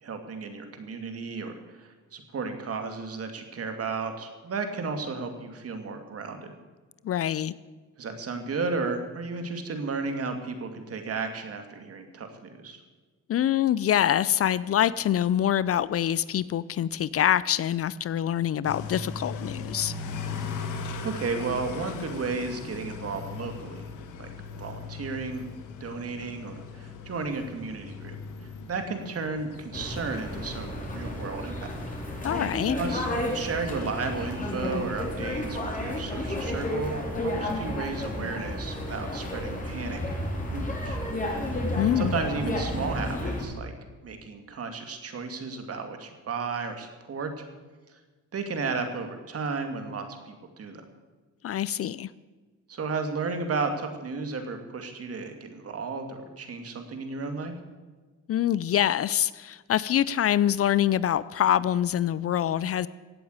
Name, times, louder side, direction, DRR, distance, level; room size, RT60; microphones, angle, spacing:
voice 1, 0.0-6.6 8.0-12.8 21.0-23.9 24.2-25.4 25.8-28.2 28.7-31.8 32.8-33.1 33.3-40.2 40.5-41.0 41.5-43.7 44.0-47.4 48.3-50.8 52.7-57.6, right 4 dB, 50° right, 6 dB, 2.4 m, -33 dB
voice 2, 7.0-7.5 13.3-19.9 32.2-32.7 41.8-42.2 51.4-52.1 58.3-62.9, left 10 dB, 50° left, 18 dB, 0.5 m, -25 dB
sound 1, 18.6-36.6, left 4 dB, 85° left, 1.7 m, -40 dB
sound 2, 29.7-43.4, left 1 dB, 25° left, 4.0 m, -32 dB
16.0 x 8.6 x 8.0 m, 1.3 s
cardioid pair, 90°, 30 cm